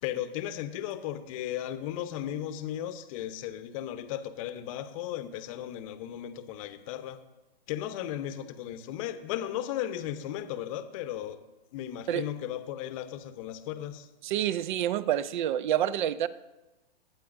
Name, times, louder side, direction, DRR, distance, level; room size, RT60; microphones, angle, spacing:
voice 1, 0.0-7.2 7.7-11.4 11.7-14.1, left 11 dB, 35° left, 0.8 m, -36 dB
voice 2, 14.2-16.3, right 11 dB, 55° right, 0.5 m, -28 dB
20.5 x 9.1 x 2.6 m
hypercardioid pair, 135°, 30 cm